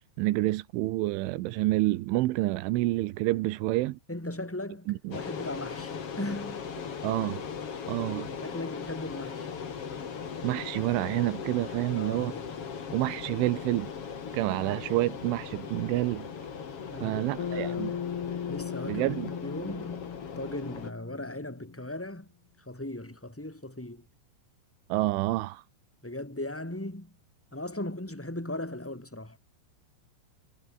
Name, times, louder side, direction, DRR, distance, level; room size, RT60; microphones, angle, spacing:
voice 1, 0.2-4.0 4.9-5.2 7.0-7.4 7.9-8.3 10.4-12.3 12.9-13.9 14.3-16.3 17.0-17.9 18.9-19.3 24.9-25.6, right 18 dB, 85° right, 3.4 m, -28 dB
voice 2, 4.1-6.9 8.4-9.5 12.0-12.5 14.7-14.8 16.9-17.9 18.5-22.3 22.6-24.0 26.0-27.1 27.5-29.4, left 1 dB, 5° left, 2.1 m, -38 dB
sound 1, 5.1-20.9, left 6 dB, 40° left, 2.6 m, -39 dB
Bass guitar, 17.4-21.8, left 8 dB, 55° left, 4.9 m, -37 dB
omnidirectional pair, 5.6 m